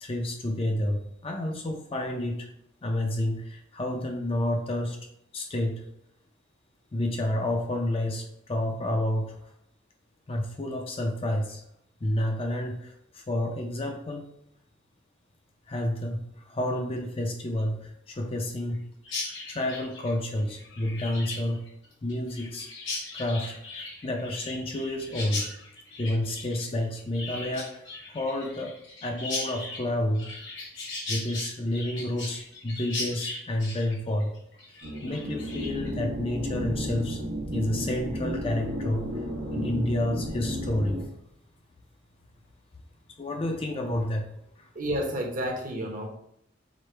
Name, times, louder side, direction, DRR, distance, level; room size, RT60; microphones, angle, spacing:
voice 1, 0.0-2.5 2.8-5.0 5.3-5.9 6.9-9.4 10.3-11.6 12.0-14.3 15.7-18.8 19.5-21.6 22.0-22.7 23.1-25.5 26.0-28.7 29.0-30.4 31.1-34.3 34.7-37.2 37.5-39.2 39.5-41.0 43.2-44.3 44.6-44.7, left 1 dB, 25° left, 3 dB, 0.4 m, -30 dB
Chirp tweet, 19.0-35.9, left 3 dB, 60° left, 1.1 m, -38 dB
sound 1, 34.8-41.0, equal, 85° right, 1.0 m, -33 dB
voice 2, 44.7-46.1, equal, 40° right, 1 dB, 0.7 m, -30 dB
5.0 x 2.1 x 4.3 m, 0.76 s
head